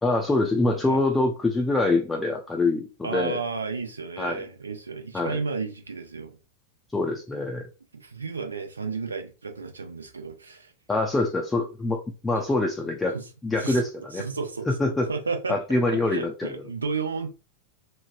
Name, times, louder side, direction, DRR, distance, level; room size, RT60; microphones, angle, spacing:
voice 1, 0.0-3.4 4.2-4.4 5.1-5.4 6.9-7.6 10.9-13.2 13.4-14.2 14.7-15.1 15.5-16.5, left 2 dB, 10° left, 0.4 m, -25 dB
voice 2, 3.0-6.4 7.9-10.7 13.1-13.3 13.6-13.9 14.1-14.7 15.1-17.3, right 4 dB, 75° right, 0.5 m, -32 dB
3.1 x 2.0 x 2.5 m
figure-of-eight pair, 90°, 0 cm